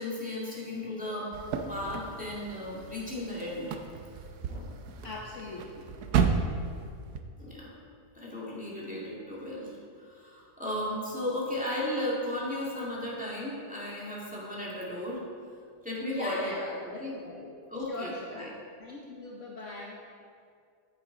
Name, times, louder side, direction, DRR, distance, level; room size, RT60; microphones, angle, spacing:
voice 1, 0.0-1.3 1.7-3.7 4.5-4.7 5.0-5.1 7.4-7.7 8.1-15.3 15.8-16.8 17.0-17.1 17.7-18.5, left 1 dB, 5° right, -7 dB, 2.0 m, -35 dB
sound 1, 1.3-7.2, right 6 dB, 80° right, 1.2 m, -33 dB
voice 2, 5.0-5.9 16.1-18.4 18.8-20.0, left 2 dB, 60° left, -1 dB, 1.1 m, -41 dB
9.1 x 8.4 x 3.8 m, 2.2 s
omnidirectional pair, 1.6 m